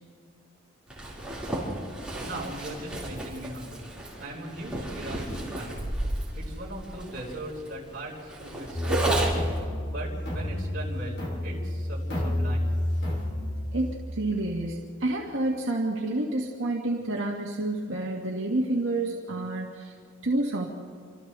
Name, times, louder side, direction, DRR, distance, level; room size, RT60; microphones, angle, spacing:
Zipper (clothing), 0.9-9.6, right 1 dB, 5° right, 4.7 m, -33 dB
voice 1, 2.2-3.9 4.2-5.8 6.3-9.0 9.8-12.7, right 1 dB, 45° right, -4 dB, 5.4 m, -39 dB
sound 1, 8.7-14.0, left 1 dB, 50° left, 3.4 m, -30 dB
voice 2, 13.7-19.9 20.2-20.7, right 2 dB, 65° right, -3 dB, 1.9 m, -29 dB
29.0 x 26.5 x 3.4 m, 2.1 s
head